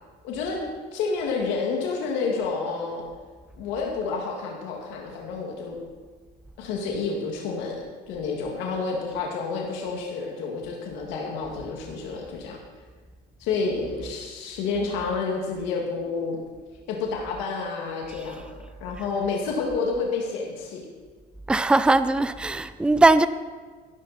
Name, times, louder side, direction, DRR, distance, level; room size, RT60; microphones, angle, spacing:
voice 1, 0.2-0.6 0.9-3.1 3.6-5.8 6.6-12.6 13.4-16.4 16.9-18.5 18.8-20.9, left 4 dB, 90° left, 2.0 m, -29 dB
voice 2, 21.5-23.3, right 2 dB, 5° right, 0.4 m, -19 dB
15.5 x 11.0 x 4.2 m
cardioid pair, 125°, 19 cm